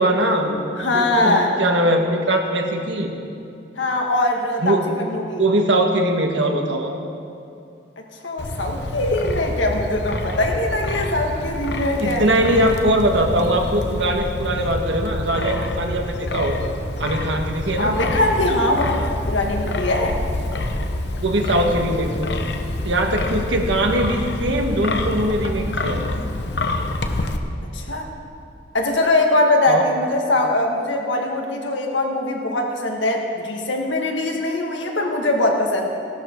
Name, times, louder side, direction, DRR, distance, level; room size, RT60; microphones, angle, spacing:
voice 1, 0.0-0.6 0.9-3.1 4.6-4.8 5.4-6.9 12.0-16.6 17.0-17.9 21.2-22.3 22.8-26.1 29.7-29.8, right 1 dB, 80° right, 3 dB, 1.5 m, -21 dB
voice 2, 0.8-1.5 3.8-4.7 5.1-5.4 8.2-12.2 17.8-20.2 27.7-28.1 28.7-35.9, left 2 dB, 85° left, 1 dB, 1.8 m, -21 dB
Wind, 8.4-27.4, left 2 dB, 65° left, 0.9 m, -27 dB
17.0 x 12.0 x 4.6 m, 2.7 s
head